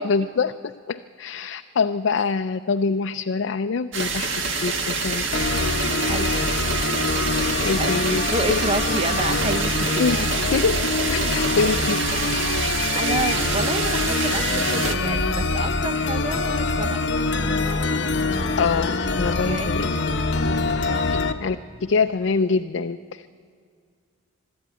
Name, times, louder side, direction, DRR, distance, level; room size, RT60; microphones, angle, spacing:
voice 1, 0.0-5.2 7.6-8.6 10.0-10.2 10.5-12.1 18.6-20.2 21.1-23.3, left 4 dB, 85° left, 8 dB, 0.5 m, -25 dB
sound 1, 3.9-14.9, right 4 dB, 85° right, 1.6 m, -26 dB
sound 2, 5.3-21.3, left 3 dB, 65° left, 1.0 m, -24 dB
voice 2, 7.7-10.0 10.5-10.6 12.9-17.0 19.5-19.7 20.9-21.1, right 2 dB, 30° right, 10 dB, 0.7 m, -29 dB
sound 3, 13.0-20.0, right 1 dB, 10° right, 1.3 m, -46 dB
22.5 x 12.5 x 9.1 m, 2.2 s
head